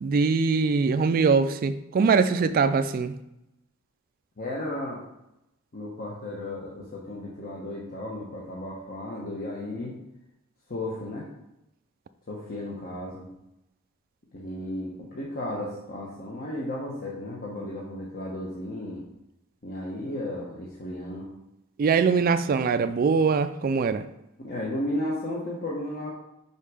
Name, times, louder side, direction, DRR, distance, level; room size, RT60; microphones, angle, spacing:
voice 1, 0.0-3.1 21.8-24.0, right 5 dB, 45° right, 11 dB, 0.3 m, -22 dB
voice 2, 4.4-5.0 5.7-10.0 10.7-11.3 12.3-13.3 14.3-19.0 19.6-21.3 24.4-26.1, left 1 dB, 45° left, -4 dB, 1.0 m, -34 dB
5.5 x 4.7 x 4.8 m, 0.88 s
head